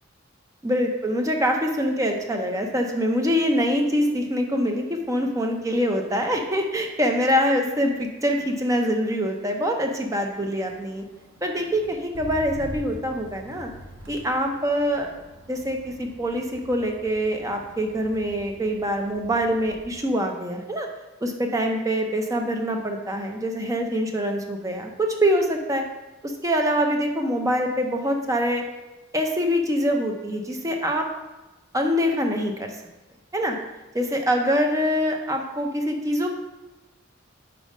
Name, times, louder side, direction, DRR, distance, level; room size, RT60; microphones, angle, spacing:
voice 1, 0.6-11.0 11.4-13.7 14.1-15.1 15.5-20.9 21.2-25.8 26.2-28.6 29.1-31.1 31.7-32.7 33.3-33.6 33.9-36.3, equal, 15° right, 3 dB, 0.6 m, -24 dB
Motor vehicle (road), 4.9-5.2 5.6-20.0 20.4-20.8, right 1 dB, 85° right, 1.0 m, -45 dB
5.1 x 4.1 x 5.3 m, 1.1 s
head